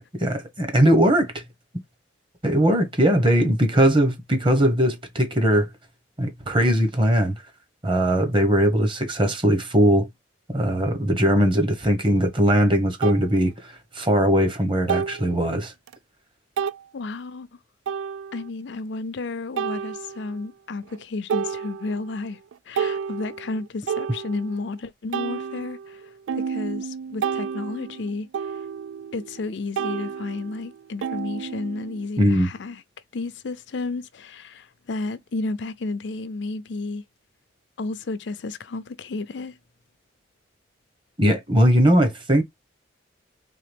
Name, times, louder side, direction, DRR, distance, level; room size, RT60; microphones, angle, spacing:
voice 1, 0.2-1.4 2.4-5.7 6.2-7.3 7.8-10.1 10.5-15.7 32.2-32.5 41.2-42.4, equal, 25° right, 1.2 m, -20 dB
sound 1, 12.2-12.3 13.0-13.2 14.9-15.3 15.9-16.0 16.6-16.8 17.9-18.5 19.6-20.4 20.9-21.0 21.3-22.1 22.5-24.7 25.1-29.5 29.8-32.1, right 7 dB, 90° right, 0.3 m, -30 dB
voice 2, 16.9-17.5 18.3-22.4 22.7-28.6 29.1-32.8 33.1-37.0 37.8-39.6, left 3 dB, 65° left, 0.5 m, -32 dB
3.9 x 3.3 x 3.4 m
head